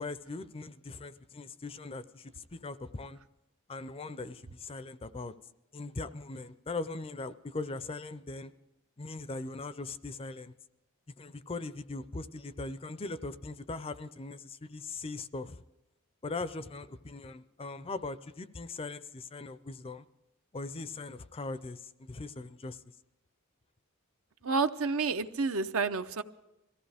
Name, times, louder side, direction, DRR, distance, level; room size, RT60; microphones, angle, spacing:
voice 1, 0.0-3.2 3.7-5.3 5.7-8.5 9.0-10.5 11.2-15.6 16.2-20.0 20.5-22.8, left 3 dB, 25° left, 0.5 m, -40 dB
voice 2, 24.4-26.2, right 4 dB, 65° right, 0.7 m, -29 dB
22.5 x 15.5 x 3.5 m
head